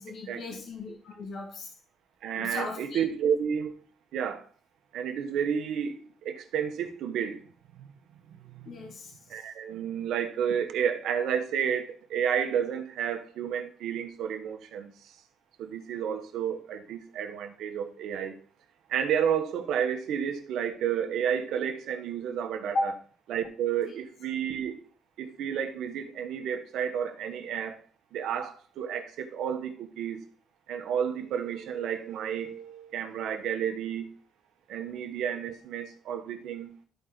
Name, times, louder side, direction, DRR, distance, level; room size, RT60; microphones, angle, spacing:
voice 1, 0.0-1.8 2.4-3.0 8.7-9.5 22.7-22.9 23.8-23.9, left 4 dB, 60° left, 2.1 m, -36 dB
voice 2, 2.2-3.7 4.1-4.5 4.9-7.4 7.7-7.9 8.3-8.7 9.3-15.1 15.6-18.3 18.9-22.9 23.3-24.8 25.2-27.8 28.1-30.2 30.7-34.1 34.7-36.7, right 8 dB, 80° right, 1.2 m, -31 dB
12.5 x 4.6 x 3.9 m
cardioid pair, 90°, 0 cm